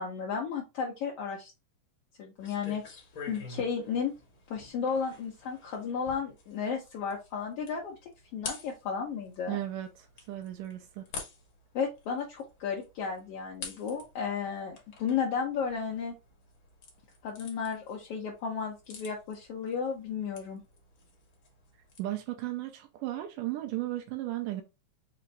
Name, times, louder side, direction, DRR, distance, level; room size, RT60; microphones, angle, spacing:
voice 1, 0.0-1.5 2.2-2.8 3.3-4.1 4.5-8.0 8.3-9.6 11.7-16.1 17.2-20.6, left 6 dB, 75° left, 1.4 m, -33 dB
sound 1, 2.4-22.0, left 4 dB, 60° left, 1.3 m, -49 dB
voice 2, 9.5-11.1 22.0-24.6, right 15 dB, 85° right, 2.3 m, -35 dB
5.6 x 2.6 x 3.2 m
omnidirectional pair, 3.8 m